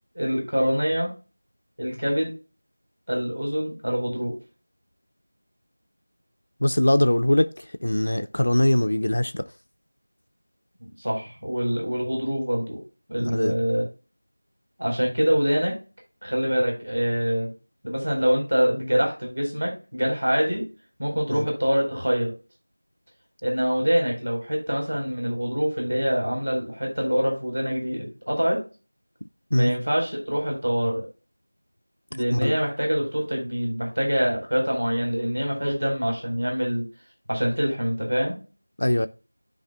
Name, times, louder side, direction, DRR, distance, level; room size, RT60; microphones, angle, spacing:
voice 1, 0.1-1.1 1.8-2.3 3.1-4.4 10.8-12.8 13.1-13.8 14.8-15.7 16.2-17.5 17.8-20.6 21.0-22.3 23.4-28.6 29.5-31.1 32.1-36.9 37.3-38.4, equal, 65° right, 4.4 m, -25 dB
voice 2, 6.6-9.5 13.2-13.5 21.3-21.5 29.5-29.7 32.3-32.6 38.8-39.1, left 1 dB, 50° left, 0.5 m, -22 dB
13.0 x 4.8 x 2.3 m
figure-of-eight pair, 175°, 0 cm